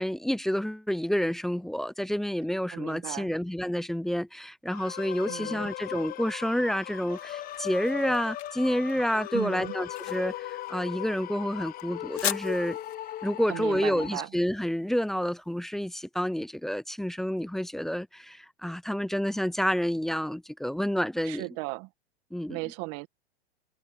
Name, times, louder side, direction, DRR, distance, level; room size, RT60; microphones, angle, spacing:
voice 1, 0.0-12.8 13.2-21.5 22.3-22.6, equal, ahead, 0.3 m, -29 dB
voice 2, 2.7-3.3 5.3-5.7 9.3-9.7 13.5-14.3 21.2-21.9 22.5-23.1, right 25 dB, 45° right, 1.8 m, -36 dB
sound 1, 4.7-14.3, left 13 dB, 30° left, 1.0 m, -38 dB
sound 2, 6.7-15.7, left 13 dB, 75° left, 4.6 m, -40 dB
Mallet percussion, 9.1-13.2, left 21 dB, 50° left, 1.6 m, -50 dB
hypercardioid pair, 125°, 32 cm